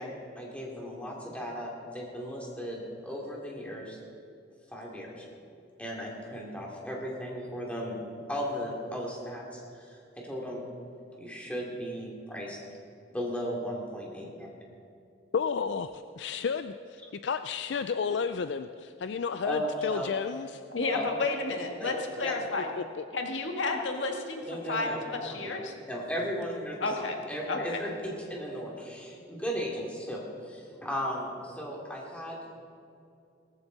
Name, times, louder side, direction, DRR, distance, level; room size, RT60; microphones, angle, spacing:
voice 1, 0.0-4.0 4.7-5.2 5.8-8.0 8.3-10.0 10.2-10.6 11.2-12.6 13.1-14.5 19.4-20.1 20.9-21.1 21.8-21.9 22.2-22.3 24.4-25.6 25.9-27.9 28.3-32.6, equal, 5° left, -3 dB, 2.7 m, -36 dB
voice 2, 15.3-20.6 22.8-23.0, left 6 dB, 65° left, 10 dB, 0.4 m, -32 dB
voice 3, 20.7-22.7 23.1-24.4 24.7-25.7 26.8-27.2 27.5-27.8, left 3 dB, 90° left, 2 dB, 1.7 m, -31 dB
18.0 x 14.5 x 4.0 m, 2.5 s
head